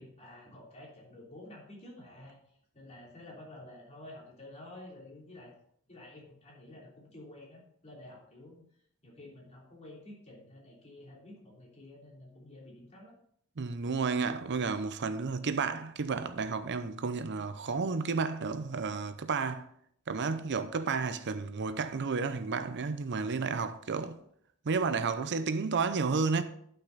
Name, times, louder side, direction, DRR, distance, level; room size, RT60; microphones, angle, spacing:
voice 1, 0.0-2.4 2.7-5.5 5.9-8.6 9.0-13.1, left 1 dB, 30° left, 3.1 m, -50 dB
voice 2, 13.6-19.6 20.1-24.2 24.6-26.4, right 4 dB, 55° right, 0.6 m, -32 dB
11.5 x 5.9 x 4.0 m
head